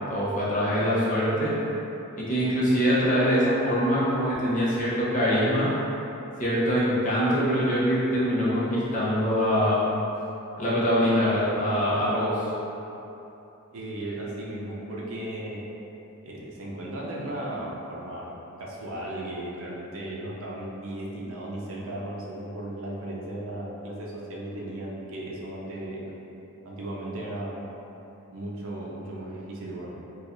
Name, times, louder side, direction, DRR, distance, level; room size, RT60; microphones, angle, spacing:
voice 1, 0.1-1.5 2.2-5.7 6.4-9.9 10.6-12.4, equal, 35° left, -8 dB, 0.7 m, -23 dB
voice 2, 13.7-15.6 16.2-26.2 26.6-27.6 28.3-30.0, right 1 dB, 70° right, -4 dB, 0.6 m, -36 dB
4.4 x 2.3 x 2.6 m, 2.9 s
head